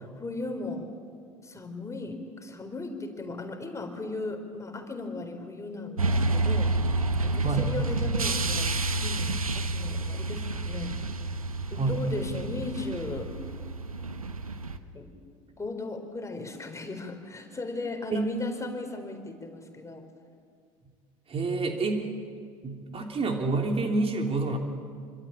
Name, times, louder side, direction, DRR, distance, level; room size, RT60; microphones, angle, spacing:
voice 1, 0.2-0.9 1.4-11.1 11.7-13.3 14.9-15.1 15.6-20.1, left 3 dB, 15° left, 5 dB, 4.2 m, -37 dB
sound 1, 6.0-14.8, right 2 dB, 85° right, 1.1 m, -29 dB
voice 2, 21.3-22.1 22.6-24.6, right 3 dB, 35° right, 3 dB, 3.1 m, -28 dB
26.0 x 25.5 x 8.8 m, 2.1 s
figure-of-eight pair, 60°, 18 cm